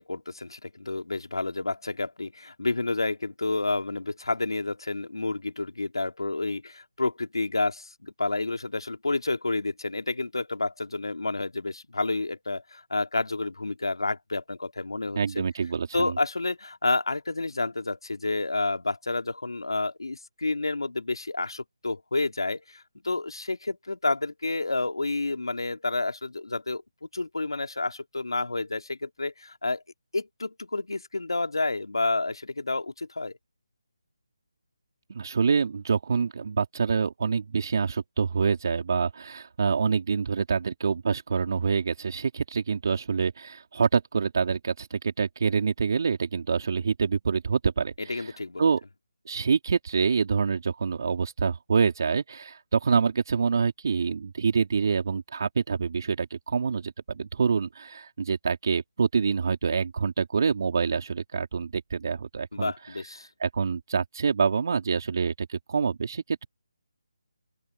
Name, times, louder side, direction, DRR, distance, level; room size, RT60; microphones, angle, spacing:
voice 1, 0.0-15.4 15.9-26.8 27.1-29.8 30.1-33.3 48.0-48.7 62.5-63.3, left 3 dB, 85° left, 2.7 m, -30 dB
voice 2, 15.1-16.1 35.1-48.2 48.6-48.8 49.3-62.7 63.4-66.4, right 5 dB, 50° right, 3.8 m, -26 dB
open air
figure-of-eight pair, 160°, 2 cm